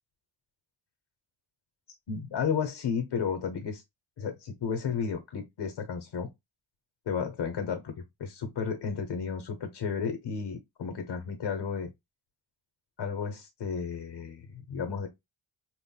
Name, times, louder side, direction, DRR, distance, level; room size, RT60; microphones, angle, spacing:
voice 1, 2.1-3.8 4.2-6.3 7.1-7.9 8.2-11.9 13.0-15.1, left 6 dB, 65° left, 1.0 m, -33 dB
5.6 x 2.4 x 2.2 m
cardioid pair, 90°, 46 cm